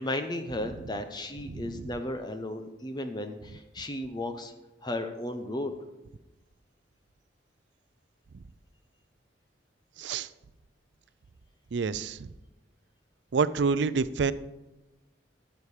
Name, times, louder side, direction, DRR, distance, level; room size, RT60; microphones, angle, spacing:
voice 1, 0.0-4.5 4.8-5.8, left 1 dB, 25° left, 7 dB, 0.7 m, -34 dB
voice 2, 1.5-1.8 10.0-10.3 11.7-12.3 13.3-14.3, right 5 dB, 70° right, 15 dB, 0.4 m, -28 dB
12.5 x 7.2 x 4.9 m, 1.0 s
head